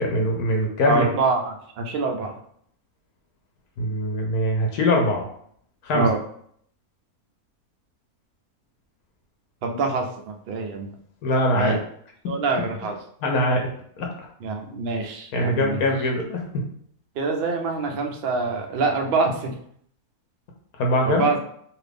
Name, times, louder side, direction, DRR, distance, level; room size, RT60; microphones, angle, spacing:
voice 1, 0.0-1.1 3.8-5.3 5.8-6.1 11.2-11.8 13.2-13.7 14.0-14.1 15.3-16.4 20.8-21.2, left 1 dB, 80° left, 1 dB, 1.1 m, -22 dB
voice 2, 0.8-2.3 5.9-6.2 9.6-10.9 11.5-11.8 12.3-13.0 14.4-15.8 17.2-19.6 21.0-21.4, right 3 dB, 70° right, 2 dB, 0.5 m, -25 dB
2.8 x 2.5 x 3.4 m, 0.65 s
omnidirectional pair, 1.6 m